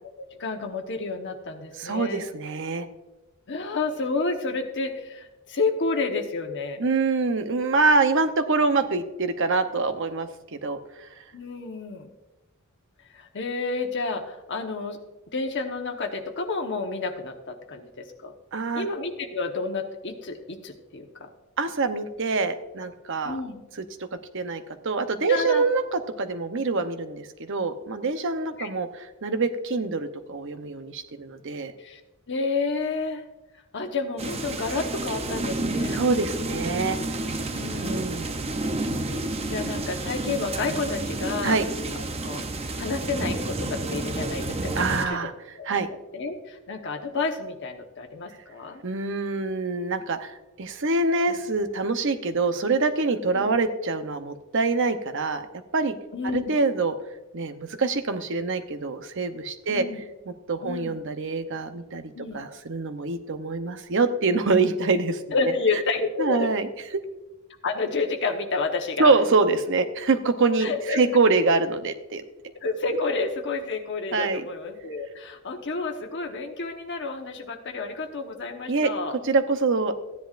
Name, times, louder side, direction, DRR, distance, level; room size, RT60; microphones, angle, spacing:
voice 1, 0.4-2.3 3.5-6.8 11.3-12.1 13.1-15.0 15.3-18.3 18.8-21.3 23.2-23.6 25.3-25.6 28.6-28.7 31.8-32.0 32.3-33.2 33.7-36.0 37.5-38.2 39.5-41.6 41.9-42.4 42.8-45.2 45.6-45.8 46.1-48.8 51.3-51.4 53.3-53.5 56.1-56.5 59.7-60.0 60.6-60.9 62.1-62.4 65.3-66.5 67.6-69.1 70.6-71.0 72.6-79.2, left 3 dB, 55° left, 4 dB, 1.2 m, -30 dB
voice 2, 1.8-2.9 6.8-11.1 18.5-18.9 21.6-23.4 24.3-31.7 35.9-37.0 37.8-38.3 41.4-41.7 44.8-45.3 45.6-45.9 48.8-55.5 55.7-55.9 56.3-56.9 57.3-59.8 60.5-65.5 66.2-66.7 69.0-72.2 74.1-74.4 78.7-78.9 79.2-79.9, right 3 dB, 60° right, 9 dB, 0.8 m, -25 dB
sound 1, 34.2-45.1, right 2 dB, 30° right, 0.7 m, -30 dB
15.0 x 10.5 x 2.5 m, 1.0 s
head